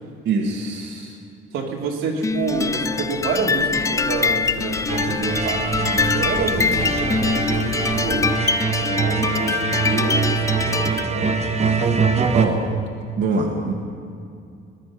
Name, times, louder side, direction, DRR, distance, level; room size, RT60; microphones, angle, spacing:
voice 1, 0.3-1.2 12.3-12.7 13.2-13.7, right 4 dB, 60° right, -1 dB, 1.7 m, -23 dB
voice 2, 1.5-8.4 8.8-11.4 11.7-12.3, right 4 dB, 90° right, -1 dB, 2.5 m, -28 dB
sound 1, 2.2-11.1, left 5 dB, 15° left, 0.3 m, -24 dB
sound 2, 2.3-8.3, left 4 dB, 75° left, 1.7 m, -36 dB
sound 3, 4.9-12.5, right 5 dB, 30° right, 1.2 m, -23 dB
19.5 x 11.0 x 6.0 m, 2.4 s
cardioid pair, 135°, 21 cm